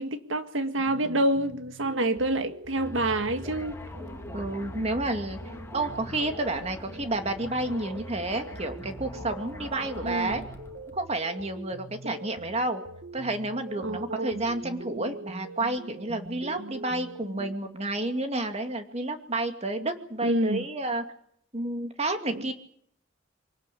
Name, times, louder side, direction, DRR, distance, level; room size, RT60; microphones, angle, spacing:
voice 1, 0.0-3.7 10.0-10.4 12.0-12.1 13.8-14.4 20.2-20.6 22.3-22.4, right 1 dB, 75° right, 1.8 m, -28 dB
sound 1, 0.8-17.6, right 2 dB, 55° right, 1.3 m, -44 dB
sound 2, 2.8-11.0, left 1 dB, 15° left, 2.5 m, -42 dB
voice 2, 4.3-5.4 5.7-10.4 10.9-12.8 13.1-21.0 21.5-22.5, right 2 dB, 35° right, 2.4 m, -30 dB
24.5 x 18.0 x 8.5 m
head